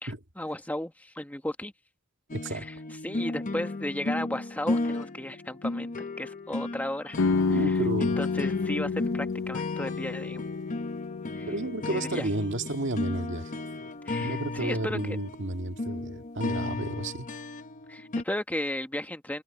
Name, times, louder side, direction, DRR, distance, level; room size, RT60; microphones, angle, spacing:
voice 1, 0.0-1.7 2.5-2.7 3.0-7.2 7.5-10.4 11.4-11.6 11.9-12.3 14.1-15.2 17.9-19.4, left 1 dB, 10° left, 1.3 m, -35 dB
sound 1, 2.3-18.2, left 2 dB, 40° left, 0.9 m, -34 dB
voice 2, 2.3-2.7 7.5-8.2 11.5-13.5 14.2-17.3, right 1 dB, 60° right, 2.0 m, -32 dB
sound 2, 7.2-12.9, left 4 dB, 75° left, 0.6 m, -30 dB
head